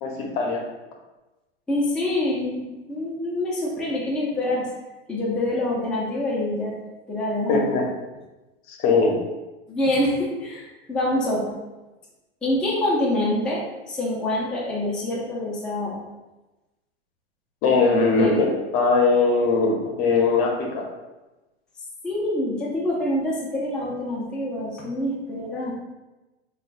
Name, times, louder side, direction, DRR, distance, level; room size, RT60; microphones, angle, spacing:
voice 1, 0.0-0.6 7.5-7.8 8.7-9.1 17.6-18.5 18.7-20.9, left 4 dB, 45° left, 1 dB, 0.8 m, -20 dB
voice 2, 1.7-2.6 2.9-4.7 5.1-6.8 7.1-7.7 9.7-11.6 12.4-16.0 18.2-18.3 22.0-25.7, left 1 dB, 5° left, -6 dB, 0.5 m, -26 dB
5.2 x 2.3 x 2.5 m, 1.1 s
hypercardioid pair, 125°, 32 cm